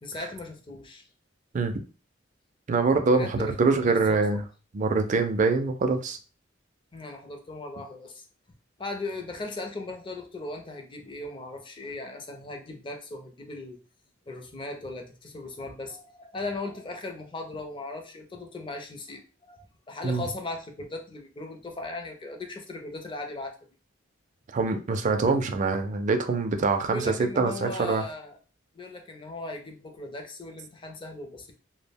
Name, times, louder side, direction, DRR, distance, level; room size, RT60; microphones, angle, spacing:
voice 1, 0.0-1.1 3.1-4.4 6.9-8.3 8.8-13.8 14.3-19.6 19.9-23.5 26.9-28.4 28.7-31.5, left 2 dB, 25° left, 4 dB, 0.5 m, -38 dB
voice 2, 2.7-4.4 4.7-6.2 20.0-20.2 24.5-28.0, right 4 dB, 40° right, 7 dB, 0.4 m, -24 dB
2.3 x 2.1 x 3.4 m, 0.35 s
head